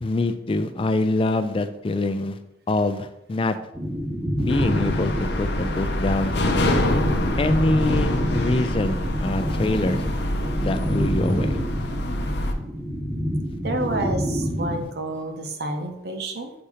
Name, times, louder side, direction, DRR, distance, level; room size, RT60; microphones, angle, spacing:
voice 1, 0.0-2.4 2.7-3.6 4.4-6.4 7.4-10.0 10.6-11.6, left 2 dB, 30° left, 10 dB, 0.3 m, -24 dB
sound 1, 3.7-14.8, equal, 5° right, 0.8 m, -28 dB
sound 2, 4.5-12.5, left 1 dB, 60° left, 0.6 m, -25 dB
voice 2, 13.6-16.5, right 2 dB, 55° right, 5 dB, 0.8 m, -29 dB
6.9 x 2.8 x 4.8 m, 0.86 s
head